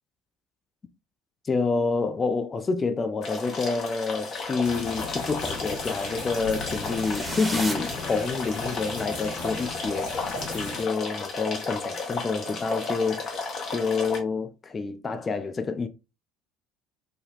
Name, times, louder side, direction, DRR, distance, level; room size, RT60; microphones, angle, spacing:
voice 1, 1.5-13.4 13.7-15.9, left 4 dB, 30° left, 0.4 m, -28 dB
sound 1, 3.2-14.2, left 3 dB, 45° left, 0.8 m, -33 dB
sound 2, 4.6-10.8, left 2 dB, 60° left, 1.4 m, -37 dB
sound 3, 6.6-8.8, right 1 dB, 10° right, 0.9 m, -37 dB
3.5 x 2.2 x 2.5 m
figure-of-eight pair, 60°, 0 cm